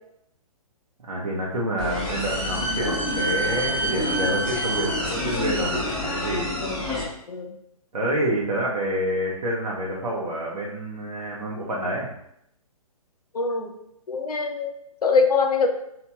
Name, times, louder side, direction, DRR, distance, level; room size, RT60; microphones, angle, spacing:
voice 1, 1.1-6.6 7.9-12.1, right 1 dB, 85° right, -4 dB, 0.7 m, -27 dB
sound 1, 1.8-7.0, equal, 5° left, 0.5 m, -27 dB
voice 2, 6.6-7.0 7.3-7.5 13.3-13.7 14.1-14.7 15.0-15.7, left 4 dB, 85° left, 4 dB, 0.5 m, -23 dB
2.9 x 2.8 x 2.2 m, 0.77 s
hypercardioid pair, 135°, 19 cm